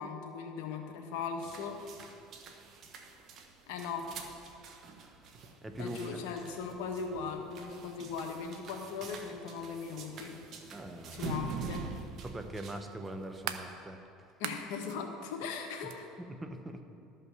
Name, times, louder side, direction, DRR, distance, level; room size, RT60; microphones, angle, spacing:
voice 1, 0.0-1.9 3.7-4.2 5.8-10.4 11.1-11.9 14.4-16.1, left 5 dB, 75° left, 3 dB, 1.3 m, -39 dB
sound 1, 1.4-13.4, right 4 dB, 50° right, 1.1 m, -45 dB
voice 2, 5.6-6.0 10.7-11.2 12.2-14.0 16.2-16.8, right 1 dB, 15° right, 6 dB, 0.9 m, -42 dB
sound 2, 12.7-13.7 14.3-15.0 15.9-16.0, right 11 dB, 75° right, 0.6 m, -40 dB
12.5 x 5.6 x 6.9 m, 2.7 s
supercardioid pair, 95°, 0 cm